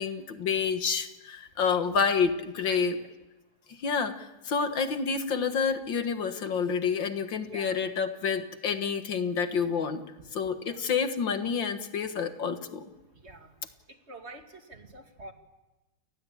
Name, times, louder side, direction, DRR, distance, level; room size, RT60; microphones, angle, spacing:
voice 1, 0.0-3.0 3.7-10.1 10.3-12.9, left 6 dB, 75° left, 8 dB, 2.3 m, -28 dB
voice 2, 1.6-2.1 2.6-3.1 7.4-7.8 10.6-10.9 13.1-13.5 13.9-15.3, right 2 dB, 35° right, 5 dB, 2.5 m, -47 dB
29.5 x 19.5 x 8.7 m, 1.1 s
omnidirectional pair, 2.1 m